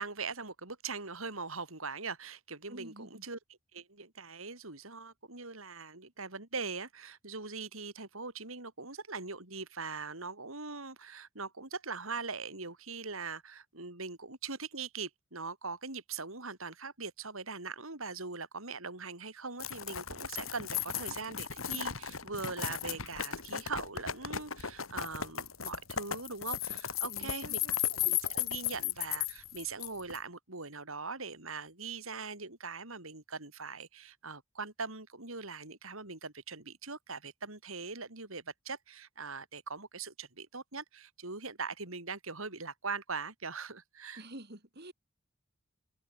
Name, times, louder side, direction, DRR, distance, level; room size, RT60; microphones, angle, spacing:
voice 1, 0.0-3.4 3.7-27.6 27.9-44.2, right 4 dB, 75° right, 5.1 m, -41 dB
voice 2, 2.7-3.2 27.1-27.8 44.1-44.9, right 1 dB, 50° right, 5.5 m, -48 dB
sound 1, 19.6-30.2, left 9 dB, 75° left, 3.8 m, -35 dB
head